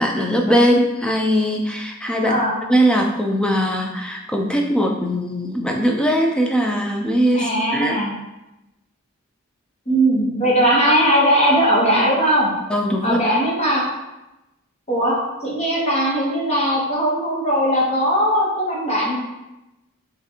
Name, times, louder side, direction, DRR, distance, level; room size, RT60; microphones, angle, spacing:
voice 1, 0.0-2.4 2.7-8.0 12.7-13.2, equal, 5° left, 2 dB, 0.3 m, -20 dB
voice 2, 7.3-8.1 9.9-12.5 13.0-13.8 14.9-19.1, equal, 30° left, -5 dB, 1.0 m, -19 dB
5.5 x 2.5 x 2.9 m, 0.96 s
head